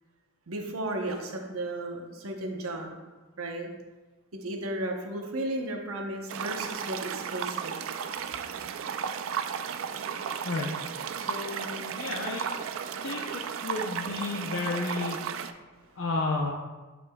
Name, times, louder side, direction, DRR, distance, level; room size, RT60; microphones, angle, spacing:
voice 1, 0.5-3.0 3.4-3.7 4.4-7.8 15.7-16.0, right 1 dB, 90° right, 2 dB, 0.9 m, -34 dB
sound 1, 6.3-15.5, right 7 dB, 70° right, 0.4 m, -34 dB
voice 2, 11.2-12.4 13.0-13.2 13.6-15.2 16.0-16.5, left 3 dB, 70° left, -2 dB, 0.6 m, -32 dB
7.9 x 6.0 x 2.3 m, 1.2 s
head